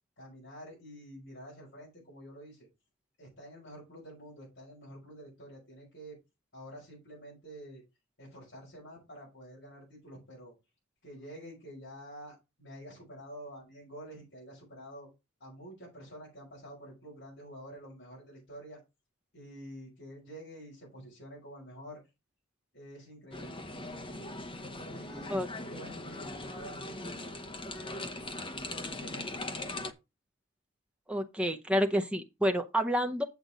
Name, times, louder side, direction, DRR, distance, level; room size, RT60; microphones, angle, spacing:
voice 1, 0.2-2.7 3.2-6.2 6.5-7.8 8.2-10.5 11.0-15.1 15.4-18.8 19.3-22.0 22.7-24.4 24.9-27.4 27.8-28.2 28.9-29.7, equal, 50° left, 6.4 m, -48 dB
sound 1, 23.3-29.9, left 2 dB, 25° left, 0.9 m, -40 dB
voice 2, 31.1-33.2, equal, 5° right, 0.7 m, -29 dB
8.2 x 7.7 x 3.9 m
head